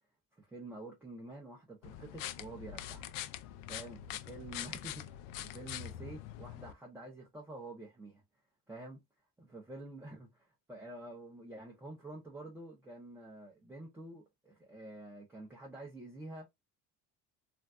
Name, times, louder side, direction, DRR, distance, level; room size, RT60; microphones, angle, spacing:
voice 1, 0.3-3.1 3.7-8.2 8.7-9.0 9.4-16.5, right 2 dB, 5° right, 0.6 m, -48 dB
sound 1, 1.8-6.7, left 12 dB, 80° left, 0.5 m, -44 dB
3.1 x 2.5 x 2.2 m
cardioid pair, 160°, 32 cm